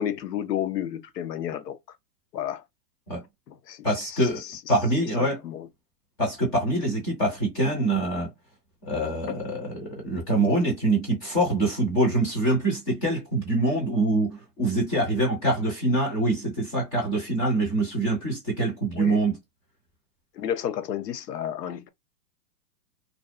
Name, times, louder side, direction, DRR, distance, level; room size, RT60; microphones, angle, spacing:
voice 1, 0.0-1.8 2.3-2.6 3.5-4.6 5.2-5.7 9.3-9.4 19.0-19.2 20.4-21.9, left 10 dB, 90° left, 0.7 m, -32 dB
voice 2, 3.8-4.4 4.7-5.4 6.2-8.3 8.8-19.4, right 1 dB, 10° left, 0.4 m, -24 dB
2.6 x 2.0 x 2.4 m
hypercardioid pair, 135°, 47 cm